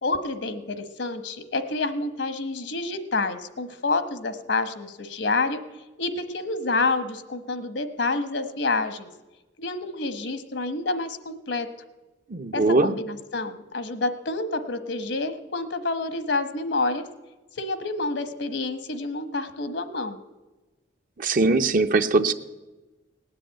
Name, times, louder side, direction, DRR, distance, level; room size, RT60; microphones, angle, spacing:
voice 1, 0.0-5.6 6.0-9.1 9.6-11.7 12.5-17.0 17.6-20.2, left 3 dB, 75° left, 10 dB, 1.2 m, -28 dB
voice 2, 12.3-12.9 21.2-22.3, right 3 dB, 50° right, 9 dB, 0.7 m, -21 dB
18.5 x 7.7 x 8.9 m, 1.1 s
head